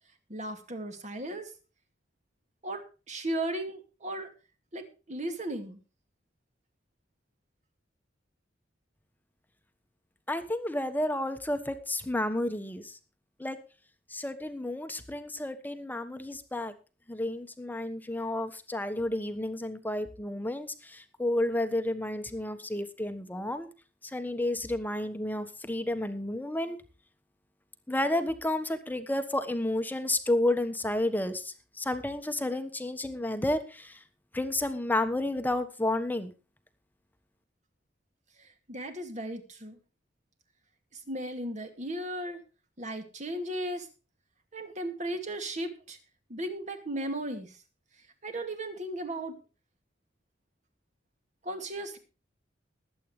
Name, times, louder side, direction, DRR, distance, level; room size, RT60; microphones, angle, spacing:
voice 1, 0.3-1.5 2.6-4.3 4.7-5.8 38.4-39.8 40.9-42.4 42.8-43.9 44.5-46.0 46.3-47.6 48.2-49.4 51.4-52.0, right 1 dB, 40° right, 6 dB, 2.4 m, -36 dB
voice 2, 10.3-13.0 13.4-13.6 14.1-16.7 17.1-23.7 24.0-26.8 27.9-34.0 34.3-36.3, left 1 dB, 10° left, 9 dB, 1.3 m, -31 dB
21.0 x 8.6 x 3.2 m, 0.32 s
head